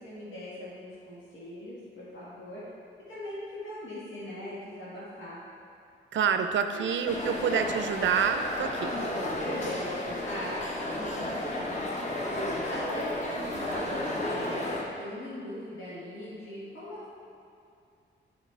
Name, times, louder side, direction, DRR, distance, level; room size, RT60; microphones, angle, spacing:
voice 1, 0.0-2.6 3.1-5.4 6.7-6.8 7.1-7.3 9.4-11.9 12.3-17.1, equal, 80° left, -9 dB, 1.8 m, -40 dB
voice 2, 6.1-8.9, right 7 dB, 75° right, 7 dB, 0.5 m, -27 dB
sound 1, 7.1-14.8, left 1 dB, 35° left, 0.9 m, -33 dB
10.0 x 5.2 x 3.3 m, 2.5 s
wide cardioid pair, 155°, 20 cm